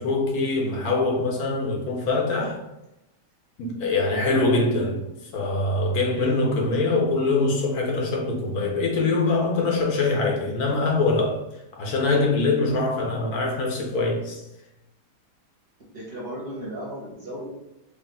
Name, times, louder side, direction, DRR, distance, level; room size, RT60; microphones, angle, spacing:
voice 1, 0.0-2.6 3.6-4.9 5.3-11.4 11.8-14.4, left 3 dB, 70° left, 1.1 m, -23 dB
voice 2, 4.3-4.7 15.9-17.5, right 1 dB, 45° right, 0.9 m, -35 dB
3.3 x 2.4 x 3.7 m
omnidirectional pair, 1.8 m